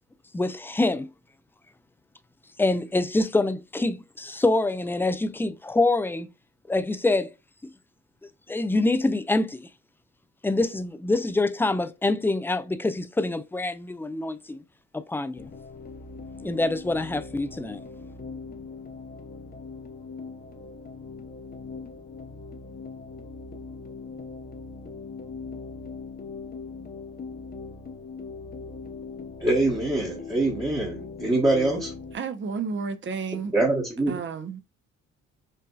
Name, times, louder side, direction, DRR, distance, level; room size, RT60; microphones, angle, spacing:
voice 1, 0.3-1.1 2.6-6.3 6.7-7.3 8.5-9.7 10.4-14.6 14.9-15.5 16.4-17.8, left 2 dB, 5° left, 0.3 m, -25 dB
sound 1, 15.4-32.2, left 4 dB, 30° left, 0.8 m, -40 dB
voice 2, 29.4-31.9 33.4-34.2, right 2 dB, 15° right, 1.1 m, -24 dB
voice 3, 32.1-33.5 34.1-34.6, right 5 dB, 40° right, 0.7 m, -31 dB
5.4 x 2.6 x 2.3 m
cardioid pair, 90°, 30 cm